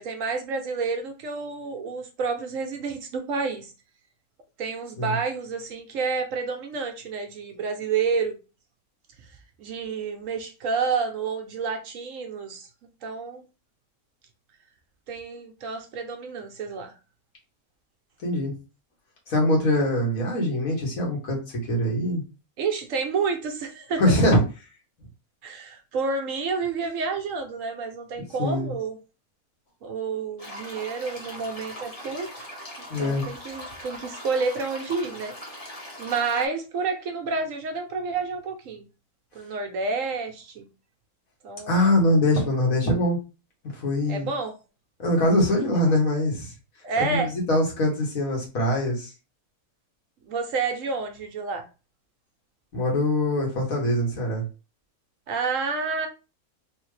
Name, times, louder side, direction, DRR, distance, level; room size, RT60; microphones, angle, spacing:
voice 1, 0.0-3.7 4.6-8.3 9.6-13.4 15.1-16.9 22.6-24.0 25.4-29.0 29.8-32.5 32.8-35.3 36.0-38.8 39.3-40.7 41.4-41.8 44.1-44.5 46.8-47.3 50.3-51.7 55.3-56.1, right 4 dB, 65° right, 1.0 m, -29 dB
voice 2, 18.2-18.5 19.3-21.4 21.7-22.2 24.0-24.4 28.4-28.7 32.9-33.3 41.7-43.2 43.7-44.3 45.0-46.5 47.0-49.1 52.7-54.4, left 1 dB, 70° left, 1.7 m, -23 dB
sound 1, 30.4-36.5, equal, 25° left, 1.2 m, -40 dB
3.5 x 2.8 x 3.1 m
omnidirectional pair, 1.6 m